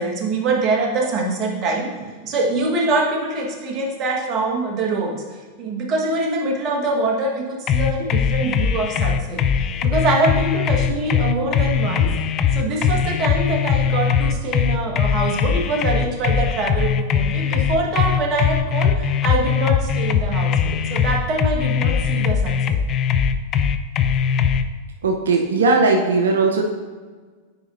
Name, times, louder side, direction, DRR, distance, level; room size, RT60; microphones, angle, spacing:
voice 1, 0.0-12.2 12.5-22.8, right 2 dB, 40° right, 1 dB, 1.3 m, -24 dB
sound 1, 7.7-24.6, left 7 dB, 35° left, 0.4 m, -20 dB
voice 2, 25.0-26.6, right 3 dB, 85° right, 1 dB, 0.6 m, -18 dB
8.7 x 5.1 x 2.5 m, 1.5 s
hypercardioid pair, 105°, 0 cm